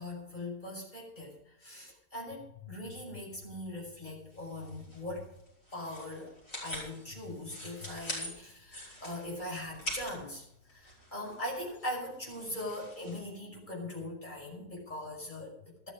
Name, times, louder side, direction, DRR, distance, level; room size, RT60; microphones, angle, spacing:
voice 1, 0.0-5.3 5.7-6.3 6.6-15.9, left 1 dB, 30° left, -1 dB, 5.8 m, -41 dB
sound 1, 4.3-13.2, equal, 65° left, 6.7 m, -45 dB
13.5 x 13.0 x 5.2 m, 0.81 s
omnidirectional pair, 1.5 m